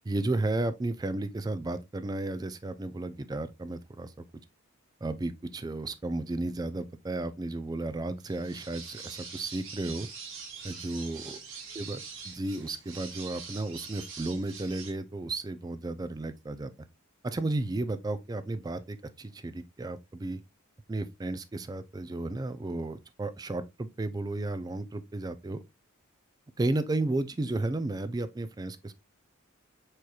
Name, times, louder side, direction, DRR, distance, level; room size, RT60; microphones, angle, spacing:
voice 1, 0.0-4.2 5.0-10.1 10.6-11.4 11.8-12.0 12.3-16.7 17.2-20.4 20.9-25.6 26.6-28.9, right 2 dB, 20° right, 0.3 m, -33 dB
sound 1, 8.2-14.9, right 5 dB, 60° right, 1.2 m, -44 dB
4.8 x 4.4 x 2.3 m
head